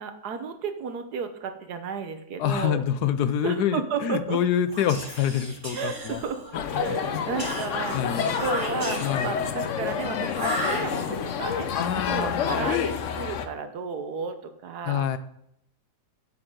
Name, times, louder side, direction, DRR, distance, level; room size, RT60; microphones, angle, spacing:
voice 1, 0.0-2.8 3.4-4.4 5.7-6.4 6.7-11.7 12.1-15.1, right 6 dB, 75° right, 8 dB, 1.5 m, -33 dB
voice 2, 2.4-6.2 6.7-7.2 7.9-8.3 9.0-9.4 11.7-12.7 14.8-15.2, left 9 dB, 75° left, 12 dB, 1.2 m, -26 dB
Whispering, 4.7-6.6 7.4-9.4 10.3-11.4, right 1 dB, 30° right, 2.6 m, -35 dB
sound 1, 6.5-13.5, left 7 dB, 60° left, 0.9 m, -29 dB
9.0 x 7.8 x 3.8 m, 0.73 s
omnidirectional pair, 1.8 m